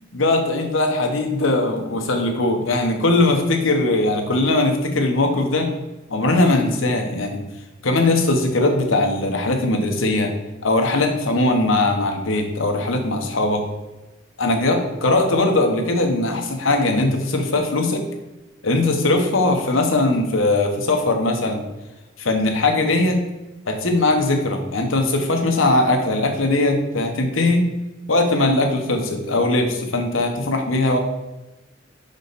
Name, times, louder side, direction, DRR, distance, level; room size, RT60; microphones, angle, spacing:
voice 1, 0.1-5.7 6.1-7.4 7.8-10.3 10.6-13.6 14.4-18.0 18.6-21.6 22.2-23.2 23.7-27.7 28.1-31.0, left 2 dB, 80° left, 3 dB, 1.1 m, -20 dB
5.2 x 5.1 x 4.0 m, 1.1 s
head